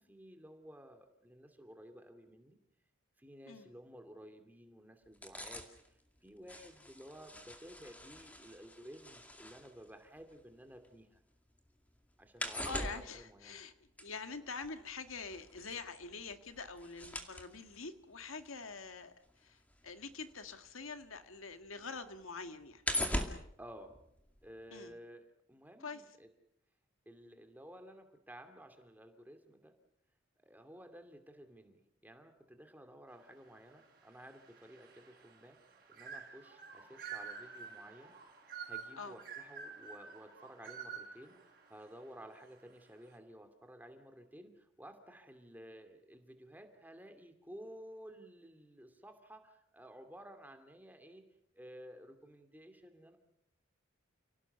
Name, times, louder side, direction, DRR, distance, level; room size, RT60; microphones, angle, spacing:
voice 1, 0.0-2.6 3.2-11.2 12.2-13.6 23.6-23.9 24.4-26.3 27.1-29.7 30.4-38.1 38.7-51.2 51.5-53.2, equal, 10° right, 6 dB, 2.5 m, -54 dB
sound 1, 5.1-11.2 11.5-21.2 21.5-24.6 24.9-25.0, left 1 dB, 5° left, 2.2 m, -43 dB
voice 2, 12.6-13.7 14.0-19.1 19.4-22.8 24.7-24.9 25.8-26.0 39.0-39.2, left 4 dB, 90° left, 9 dB, 1.8 m, -45 dB
sound 2, 33.6-42.5, right 6 dB, 45° right, 5.7 m, -49 dB
29.5 x 18.0 x 6.9 m, 0.77 s
head